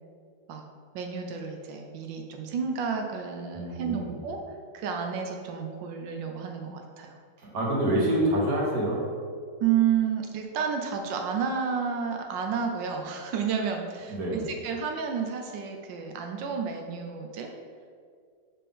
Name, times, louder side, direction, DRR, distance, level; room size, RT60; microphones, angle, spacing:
voice 1, 0.9-4.4 4.7-7.2 9.6-17.5, right 7 dB, 85° right, 3 dB, 1.3 m, -31 dB
voice 2, 3.5-4.1 7.4-9.0 14.1-14.4, right 1 dB, 55° right, -3 dB, 1.7 m, -26 dB
7.3 x 4.2 x 3.6 m, 2.1 s
omnidirectional pair, 2.0 m